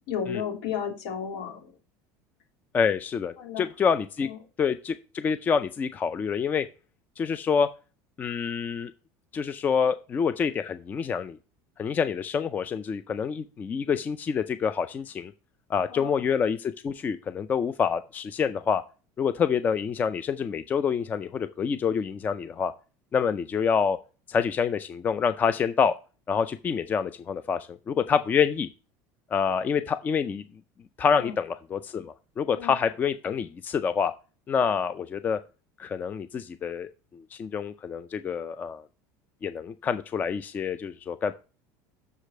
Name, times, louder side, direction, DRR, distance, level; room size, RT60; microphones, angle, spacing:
voice 1, 0.1-1.7 3.4-3.7 4.2-4.4 15.9-16.1 31.2-31.4 32.5-32.8, left 8 dB, 75° left, 2 dB, 3.2 m, -33 dB
voice 2, 2.7-4.3 4.6-6.7 7.2-7.7 8.2-8.9 9.3-11.4 11.8-15.3 15.7-18.8 19.2-22.7 23.1-24.0 24.3-25.9 26.3-28.7 29.3-30.4 31.0-34.1 34.5-35.4 35.8-38.8 39.4-41.4, left 6 dB, 20° left, 12 dB, 0.4 m, -27 dB
6.6 x 5.0 x 6.3 m, 0.33 s
cardioid pair, 155°, 8 cm